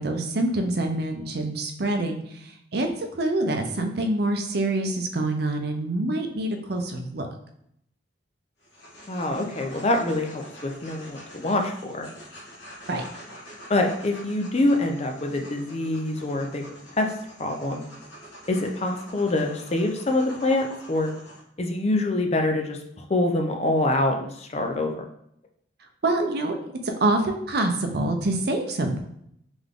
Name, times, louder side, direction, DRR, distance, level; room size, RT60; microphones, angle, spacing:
voice 1, 0.0-2.2 2.7-2.9 3.2-7.3 12.9-13.0 26.0-29.0, right 2 dB, 55° right, 5 dB, 0.6 m, -26 dB
sound 1, 8.6-21.4, equal, 60° left, 1.4 m, -45 dB
voice 2, 9.1-12.1 13.7-16.6 17.0-17.1 17.4-17.8 18.5-21.1 21.6-25.0, left 2 dB, 35° left, 3 dB, 0.5 m, -25 dB
3.8 x 3.4 x 3.6 m, 0.72 s
head